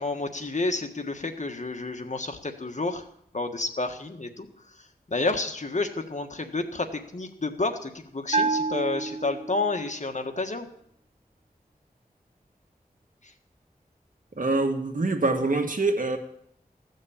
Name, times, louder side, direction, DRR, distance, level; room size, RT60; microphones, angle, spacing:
voice 1, 0.0-3.0 3.3-4.5 5.1-10.7, left 3 dB, 50° left, 5 dB, 1.6 m, -30 dB
Bell, 8.3-9.9, right 3 dB, 40° right, 1.4 m, -28 dB
voice 2, 14.4-16.2, right 2 dB, 60° right, 5 dB, 1.9 m, -25 dB
15.5 x 6.4 x 8.9 m, 0.70 s
wide cardioid pair, 55°, 15 cm